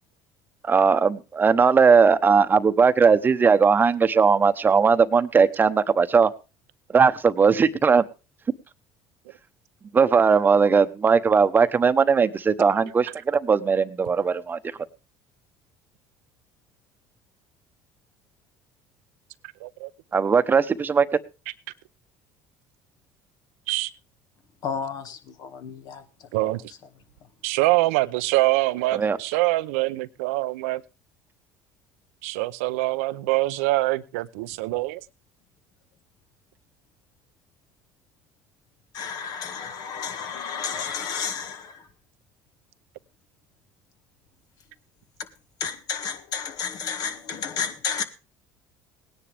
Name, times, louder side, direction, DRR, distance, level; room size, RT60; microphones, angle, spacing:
voice 1, 0.6-6.3 6.9-8.0 9.9-14.6 20.1-21.1 28.9-29.2, right 5 dB, 25° right, 1.0 m, -19 dB
voice 2, 24.6-26.5 38.9-41.9 45.6-48.0, left 6 dB, 60° left, 1.8 m, -32 dB
voice 3, 26.3-26.7 27.4-30.8 32.2-35.0, right 20 dB, 85° right, 0.6 m, -24 dB
18.5 x 10.0 x 3.4 m
supercardioid pair, 90°, 7 cm